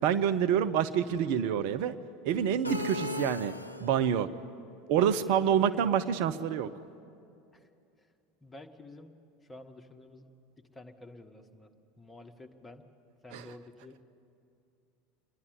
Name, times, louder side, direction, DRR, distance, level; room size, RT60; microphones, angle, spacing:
voice 1, 0.0-2.0 2.2-3.5 3.8-4.3 4.9-6.7 13.3-13.5, right 9 dB, 55° right, 11 dB, 0.5 m, -27 dB
sound 1, 2.6-4.2, left 1 dB, 90° left, 0.4 m, -36 dB
voice 2, 5.0-5.9 7.5-7.7 8.4-9.1 9.5-10.3 10.6-12.8 13.2-14.0, left 2 dB, 15° left, 4 dB, 1.4 m, -49 dB
27.0 x 10.5 x 9.7 m, 2.6 s
figure-of-eight pair, 75°, 0 cm